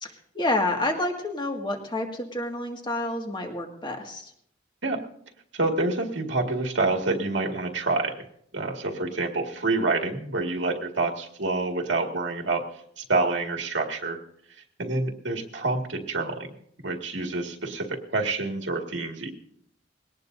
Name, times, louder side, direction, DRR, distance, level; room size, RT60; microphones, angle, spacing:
voice 1, 0.0-4.3, left 2 dB, 25° left, 2 dB, 2.0 m, -29 dB
voice 2, 5.5-8.1 8.5-12.6 13.0-14.2 14.8-16.5 16.8-19.3, right 3 dB, 75° right, 2 dB, 2.0 m, -27 dB
20.5 x 18.5 x 2.7 m, 0.70 s
head